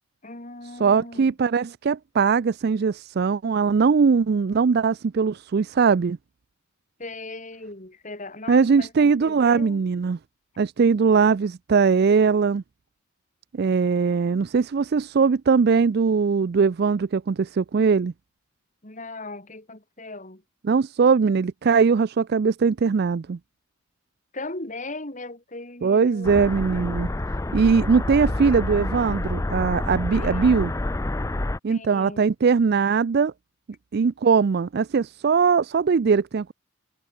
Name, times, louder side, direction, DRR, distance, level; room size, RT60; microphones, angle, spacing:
voice 1, 0.2-1.3 7.0-9.8 18.8-20.4 24.3-26.5 30.1-30.7 31.7-32.3, left 2 dB, 40° left, 3.4 m, -38 dB
voice 2, 0.8-6.2 8.5-10.2 10.6-12.6 13.5-18.1 20.6-23.4 25.8-27.1 27.5-30.7 31.6-33.3 33.9-36.5, right 5 dB, 50° right, 0.4 m, -20 dB
sound 1, 26.2-31.6, left 1 dB, 15° left, 0.5 m, -28 dB
head